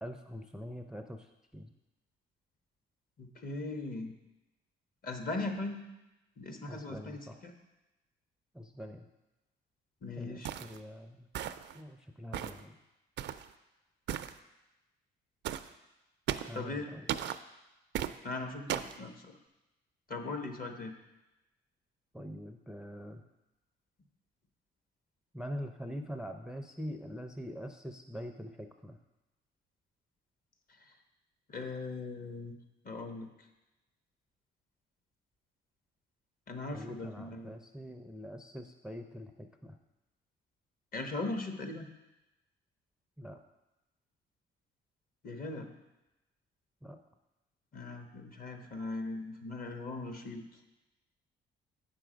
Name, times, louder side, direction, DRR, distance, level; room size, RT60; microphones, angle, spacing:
voice 1, 0.0-1.3 1.5-1.7 6.7-7.4 8.5-9.1 10.2-11.3 11.7-12.7 16.5-17.1 22.1-23.2 25.3-29.0 36.7-39.8 43.2-43.4 46.8-47.0, equal, 5° right, 6 dB, 0.5 m, -44 dB
voice 2, 3.2-4.1 5.0-5.8 6.4-7.5 10.0-10.5 16.5-16.9 18.2-19.3 20.1-20.9 31.5-32.5 32.8-33.3 36.5-37.6 40.9-41.9 45.2-45.7 47.7-50.4, left 2 dB, 45° left, 5 dB, 1.1 m, -39 dB
sound 1, 10.4-10.8 11.3-11.8 12.3-12.6 13.2-13.5 14.1-14.3 15.4-15.7 16.3-16.6 17.1-17.4 17.9-18.2 18.7-19.0, right 11 dB, 65° right, 0.4 m, -36 dB
7.6 x 5.9 x 5.0 m, 1.0 s
cardioid pair, 90°, 20 cm